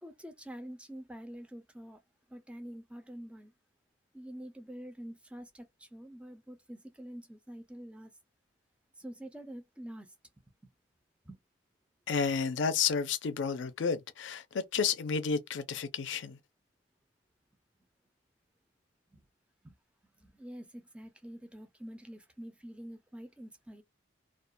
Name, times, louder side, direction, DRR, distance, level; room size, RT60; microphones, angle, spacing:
voice 1, 0.0-2.0 2.3-3.5 4.1-8.1 9.0-10.1 11.2-11.4 19.1-19.3 19.6-19.8 20.2-23.8, equal, 5° right, 0.4 m, -46 dB
voice 2, 12.1-16.4, left 6 dB, 70° left, 0.4 m, -31 dB
2.3 x 2.1 x 2.5 m
head